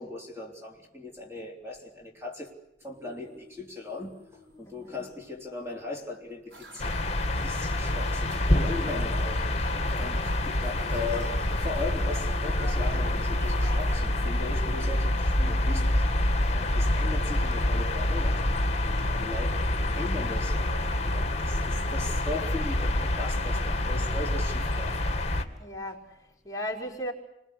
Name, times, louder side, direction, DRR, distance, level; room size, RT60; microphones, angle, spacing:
voice 1, 0.0-2.5 2.8-18.7 19.1-19.7 19.9-25.1, left 2 dB, 15° right, 3.7 m, -38 dB
sound 1, 2.9-7.1 10.7-14.1 14.5-14.6 17.4-20.3 20.6-20.8, left 1 dB, 60° right, 7.8 m, -51 dB
voice 2, 4.6-5.0 25.6-27.1, equal, 20° left, 4.3 m, -37 dB
sound 2, 6.5-14.0, right 2 dB, 80° right, 6.2 m, -49 dB
sound 3, 6.8-25.4, left 1 dB, 35° left, 2.4 m, -27 dB
29.5 x 22.5 x 8.5 m
head